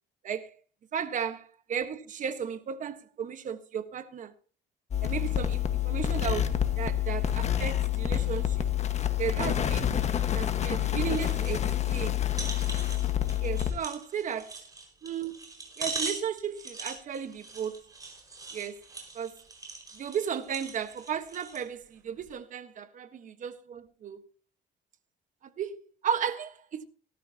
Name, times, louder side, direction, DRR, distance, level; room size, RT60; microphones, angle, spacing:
voice 1, 0.9-4.3 5.0-8.7 9.2-9.9 10.3-12.2 13.4-14.5 15.0-15.4 15.8-17.8 18.5-18.8 19.1-19.4 19.9-24.3 25.4-26.8, right 8 dB, 50° right, 1.4 m, -35 dB
sound 1, 4.9-13.7, left 11 dB, 40° left, 1.5 m, -28 dB
sound 2, 11.1-11.6 11.9-12.0 12.3-21.7 22.2-22.3, right 3 dB, 20° right, 5.4 m, -41 dB
18.5 x 13.0 x 2.9 m
cardioid pair, 110°, 17 cm